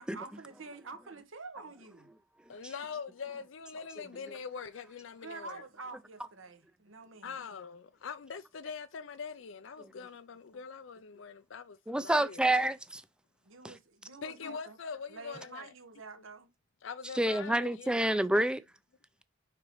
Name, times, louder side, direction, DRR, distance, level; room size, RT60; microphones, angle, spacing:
voice 1, 0.0-2.1 5.2-7.4 13.4-14.8 15.1-16.5, right 3 dB, 75° right, 1.2 m, -48 dB
voice 2, 2.5-5.6 7.2-12.4 14.2-15.7 16.8-18.1, left 5 dB, 70° left, 0.5 m, -43 dB
voice 3, 11.9-13.0 13.6-13.7 17.2-18.6, right 1 dB, 5° right, 0.5 m, -28 dB
6.6 x 5.2 x 3.0 m
head